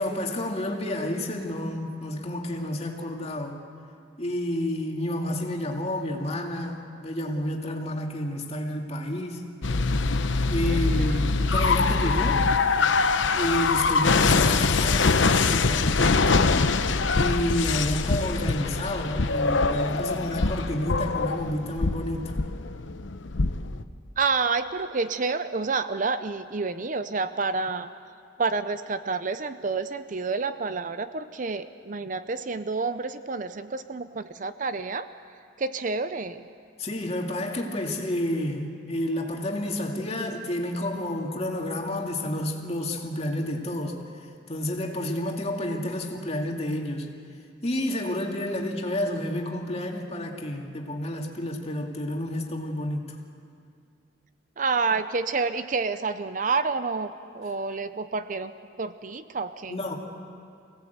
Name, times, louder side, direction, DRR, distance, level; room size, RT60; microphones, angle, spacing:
voice 1, 0.0-3.6 4.2-9.4 10.5-12.4 13.3-16.5 17.2-22.3 36.8-44.0 44.5-47.1 47.6-53.2 59.7-60.0, left 1 dB, 35° left, 1 dB, 2.4 m, -30 dB
sound 1, 9.6-23.8, left 4 dB, 85° left, 0.9 m, -23 dB
voice 2, 10.7-11.3 24.2-27.9 28.4-35.1 35.6-36.4 54.6-58.5 58.8-59.8, right 4 dB, 45° right, 12 dB, 0.6 m, -29 dB
25.5 x 17.5 x 8.1 m, 2.4 s
head